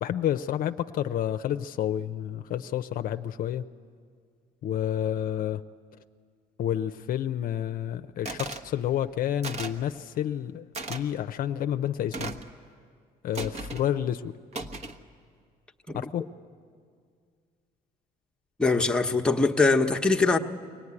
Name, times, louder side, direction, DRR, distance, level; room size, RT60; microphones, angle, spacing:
voice 1, 0.0-3.6 4.6-5.6 6.6-12.3 13.2-14.3 15.9-16.3, left 10 dB, 55° left, 0.6 m, -29 dB
sound 1, 8.3-8.7 9.4-9.8 10.7-11.0 12.1-12.5 13.3-13.9 14.5-15.0, right 3 dB, 40° right, 1.3 m, -36 dB
voice 2, 18.6-20.4, left 3 dB, 5° left, 1.1 m, -22 dB
24.0 x 18.0 x 9.7 m
cardioid pair, 110°, 17 cm